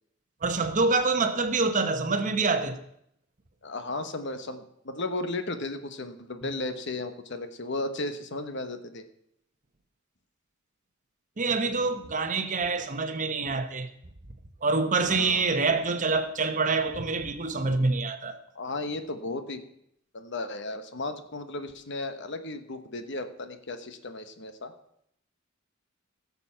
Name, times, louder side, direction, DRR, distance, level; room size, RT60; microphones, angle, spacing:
voice 1, 0.4-2.8 11.4-13.9 14.6-18.4, right 3 dB, 35° right, 1.0 m, -26 dB
voice 2, 3.6-9.0 15.1-15.4 18.5-19.6 20.1-24.7, left 2 dB, 55° left, 1.1 m, -35 dB
17.0 x 7.0 x 5.7 m
head